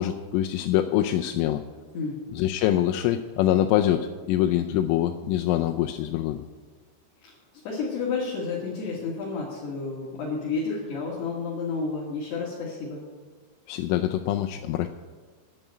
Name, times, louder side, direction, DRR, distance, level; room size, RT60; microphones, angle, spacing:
voice 1, 0.0-1.6 2.3-6.4 13.7-14.9, left 12 dB, 90° left, 5 dB, 3.2 m, -24 dB
voice 2, 7.6-13.0, left 4 dB, 60° left, -5 dB, 4.2 m, -31 dB
11.0 x 9.2 x 8.9 m, 1.4 s
omnidirectional pair, 5.6 m